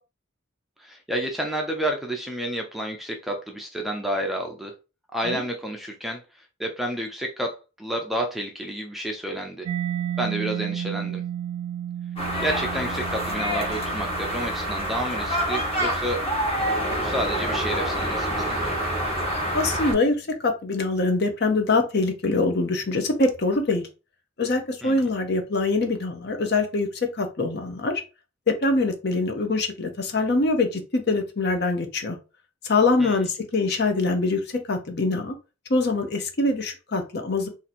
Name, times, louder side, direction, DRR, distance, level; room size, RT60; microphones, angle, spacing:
voice 1, 0.8-4.7 5.1-6.2 6.6-9.7 10.2-11.2 12.4-16.2 17.0-18.8 24.8-25.1 33.0-33.2, right 1 dB, ahead, 1 dB, 0.4 m, -30 dB
Mallet percussion, 9.7-17.2, right 10 dB, 85° right, 0.5 m, -34 dB
sound 1, 12.2-19.9, equal, 25° left, 1.1 m, -27 dB
voice 2, 19.5-23.9 24.4-26.9 27.1-27.9 28.6-32.2 32.6-34.4 34.7-35.3 35.7-37.5, left 3 dB, 50° left, 6 dB, 0.7 m, -24 dB
2.8 x 2.6 x 4.1 m, 0.31 s
head